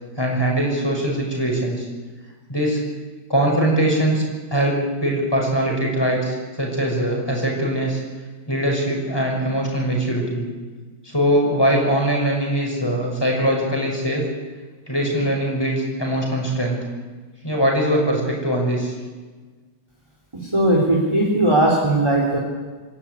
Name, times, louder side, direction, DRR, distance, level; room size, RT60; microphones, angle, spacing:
voice 1, 0.2-1.9 2.5-2.8 3.3-4.2 4.5-8.0 8.5-10.5 11.0-14.2 14.9-16.8 17.4-18.9, right 1 dB, 10° left, 0 dB, 5.8 m, -21 dB
voice 2, 20.5-22.4, right 1 dB, 15° right, -2 dB, 3.3 m, -18 dB
26.5 x 12.5 x 9.8 m, 1.4 s
omnidirectional pair, 2.3 m